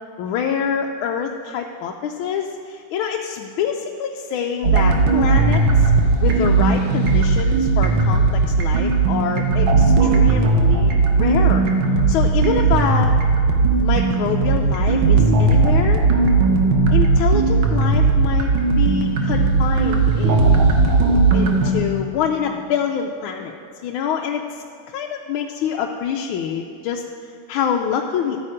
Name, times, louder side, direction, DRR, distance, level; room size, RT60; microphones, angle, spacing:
voice 1, 0.2-5.9 6.2-11.6 12.1-13.1 13.8-16.0 16.9-20.6 21.3-23.5 23.8-28.5, left 7 dB, 80° left, 2 dB, 1.4 m, -26 dB
sound 1, 4.6-21.7, right 4 dB, 70° right, 1.8 m, -17 dB
12.5 x 8.6 x 4.9 m, 2.4 s
omnidirectional pair, 2.3 m